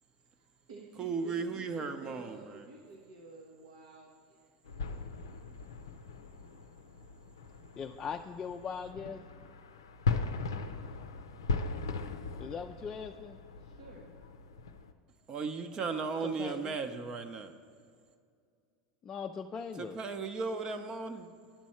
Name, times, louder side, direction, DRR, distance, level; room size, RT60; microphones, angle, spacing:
voice 1, 0.4-4.5 13.6-14.1, right 3 dB, 80° right, -1 dB, 1.0 m, -52 dB
voice 2, 1.0-2.6 15.3-17.5 19.8-21.3, right 4 dB, 35° right, 8 dB, 0.7 m, -36 dB
sound 1, 4.7-14.9, left 4 dB, 90° left, 0.5 m, -38 dB
voice 3, 7.8-9.2 12.4-13.4 16.2-16.8 19.0-20.0, left 6 dB, 30° left, 4 dB, 0.4 m, -40 dB
10.5 x 6.1 x 4.3 m, 2.2 s
hypercardioid pair, 95°, 2 cm